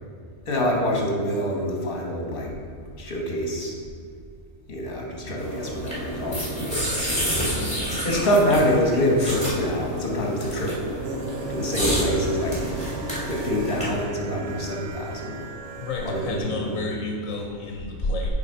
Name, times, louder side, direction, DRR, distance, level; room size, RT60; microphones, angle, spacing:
voice 1, 0.5-2.6 3.0-3.7 4.7-6.6 8.0-10.8 11.5-12.6 13.3-15.4 16.0-16.9, equal, 45° left, 0 dB, 1.4 m, -25 dB
sound 1, 5.4-14.0, equal, 5° left, 1.8 m, -29 dB
voice 2, 7.5-7.9 15.8-18.3, left 3 dB, 75° left, 1 dB, 1.1 m, -32 dB
sound 2, 11.0-16.4, right 2 dB, 60° right, 0.8 m, -36 dB
8.2 x 3.6 x 5.4 m, 2.2 s
omnidirectional pair, 1.4 m